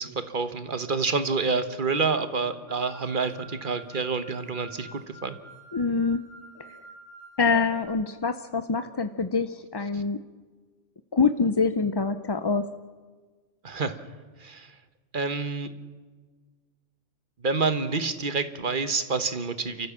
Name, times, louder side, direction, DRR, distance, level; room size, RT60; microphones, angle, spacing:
voice 1, 0.0-5.4 9.9-10.0 13.6-14.0 14.4-14.7 15.1-15.7 17.4-19.9, right 4 dB, 45° right, 10 dB, 1.3 m, -28 dB
sound 1, 2.7-7.9, right 2 dB, 70° right, 6.8 m, -48 dB
voice 2, 5.7-6.2 7.4-10.2 11.1-12.7, left 4 dB, 35° left, 10 dB, 0.4 m, -25 dB
30.0 x 14.0 x 7.3 m, 1.4 s
omnidirectional pair, 1.2 m